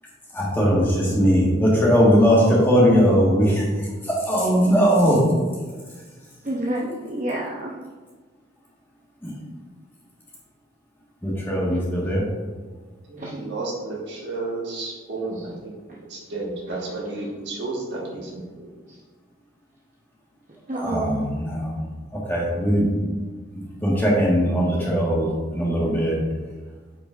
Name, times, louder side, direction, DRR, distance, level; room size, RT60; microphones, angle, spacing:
voice 1, 0.3-3.6 4.2-5.2 9.2-9.3 11.2-12.2 20.8-21.8 22.3-22.9 23.5-25.3 25.5-26.1, equal, 10° left, -5 dB, 1.4 m, -19 dB
voice 2, 6.4-7.7 13.2-13.3 15.4-15.5 17.1-17.3 20.7-21.2, right 1 dB, 40° right, -4 dB, 0.7 m, -28 dB
voice 3, 13.1-15.7 16.1-18.7, right 2 dB, 60° right, -3 dB, 1.5 m, -32 dB
8.7 x 5.1 x 2.4 m, 1.4 s
head